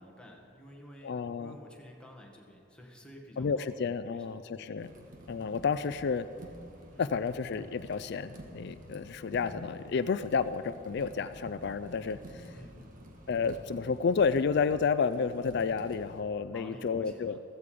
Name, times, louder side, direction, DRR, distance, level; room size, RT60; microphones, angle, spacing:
voice 1, 0.0-3.7 4.0-5.0 6.9-7.1 12.5-13.1 16.5-17.4, equal, 5° left, 0 dB, 1.7 m, -51 dB
voice 2, 1.0-1.5 3.4-4.9 5.3-6.3 7.0-12.2 13.3-17.4, left 5 dB, 60° left, 13 dB, 0.4 m, -30 dB
sound 1, 4.8-16.2, equal, 45° right, 1.6 m, -49 dB
15.0 x 14.5 x 5.1 m, 2.6 s
head